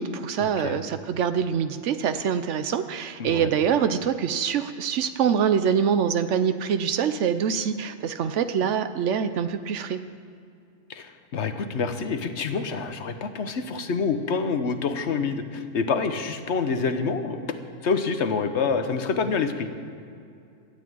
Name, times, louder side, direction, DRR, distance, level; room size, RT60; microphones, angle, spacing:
voice 1, 0.0-10.0, right 7 dB, 80° right, 10 dB, 1.0 m, -25 dB
voice 2, 3.2-3.5 10.9-17.5 17.8-19.7, left 5 dB, 70° left, 8 dB, 1.3 m, -27 dB
13.0 x 8.4 x 9.3 m, 2.5 s
omnidirectional pair, 1.2 m